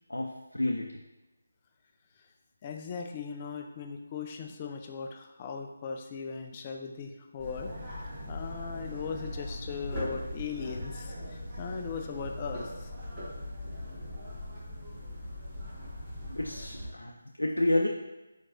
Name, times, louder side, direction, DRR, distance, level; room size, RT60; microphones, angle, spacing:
voice 1, 0.1-0.9 16.3-17.9, left 1 dB, 90° left, 1 dB, 0.4 m, -30 dB
voice 2, 2.6-7.7 8.3-12.9, left 5 dB, 30° left, 4 dB, 0.4 m, -38 dB
sound 1, 7.4-16.9, left 1 dB, 25° right, 1.5 m, -40 dB
4.6 x 4.4 x 2.6 m, 1.1 s
figure-of-eight pair, 155°, 0 cm